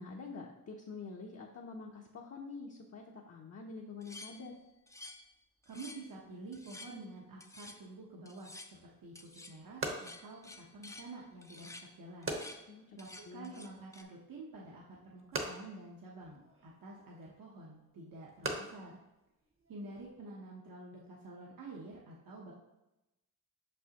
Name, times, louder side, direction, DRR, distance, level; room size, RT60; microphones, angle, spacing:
voice 1, 0.0-4.5 12.7-13.0 13.2-13.5, left 4 dB, 45° left, -1 dB, 0.7 m, -46 dB
sound 1, 4.0-5.3 5.6-6.1 6.5-7.0 7.4-7.8 8.3-8.7 9.2-9.6 9.9-11.1 11.4-11.9 12.2-12.6 13.0-14.0, left 2 dB, 10° left, 0.4 m, -51 dB
voice 2, 5.7-8.6 8.8-12.4 13.0-19.0 19.7-22.5, right 2 dB, 70° right, -4 dB, 1.0 m, -49 dB
sound 2, 8.7-20.1, right 2 dB, 35° right, 0.9 m, -45 dB
6.1 x 5.3 x 2.9 m, 0.96 s
wide cardioid pair, 105°, 35 cm